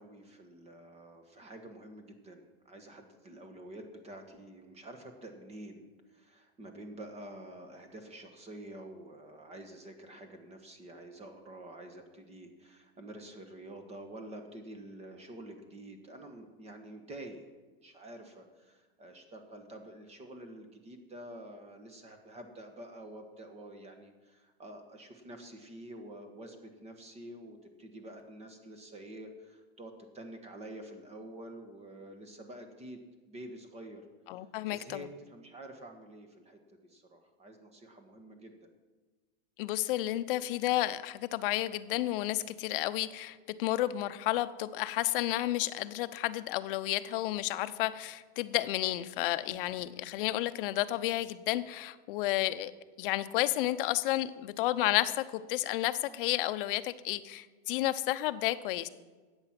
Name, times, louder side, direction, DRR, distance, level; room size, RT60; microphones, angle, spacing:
voice 1, 0.0-33.0 33.3-34.0 34.7-38.5, right 1 dB, 20° right, 6 dB, 1.3 m, -48 dB
voice 2, 34.3-35.1 39.6-52.7 53.0-58.9, left 15 dB, 60° left, 13 dB, 0.8 m, -31 dB
13.5 x 8.9 x 6.0 m, 1.3 s
supercardioid pair, 150°, 31 cm